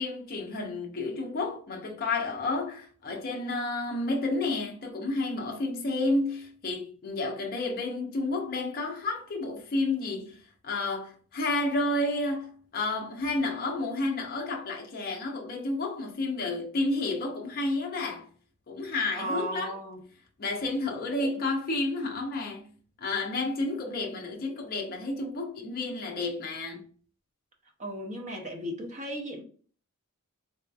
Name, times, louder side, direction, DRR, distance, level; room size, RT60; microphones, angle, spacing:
voice 1, 0.0-18.3 18.7-19.8 20.4-22.7 23.0-26.9, left 2 dB, 45° left, 0.5 m, -31 dB
voice 2, 19.1-20.0 21.2-21.3 27.8-29.4, right 1 dB, 35° right, 0.7 m, -35 dB
3.1 x 2.7 x 2.3 m
head